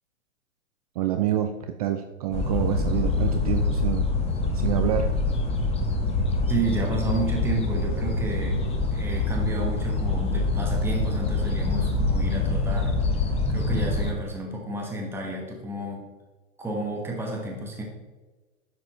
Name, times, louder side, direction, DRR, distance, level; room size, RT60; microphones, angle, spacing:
voice 1, 1.0-4.1 4.5-5.1, right 11 dB, 30° right, 7 dB, 0.4 m, -27 dB
sound 1, 2.3-14.1, left 3 dB, 15° left, 1.2 m, -25 dB
voice 2, 6.5-13.2 13.5-16.0 16.6-17.8, right 2 dB, 5° right, -1 dB, 1.5 m, -31 dB
10.5 x 7.5 x 3.1 m, 1.3 s
hypercardioid pair, 115°, 42 cm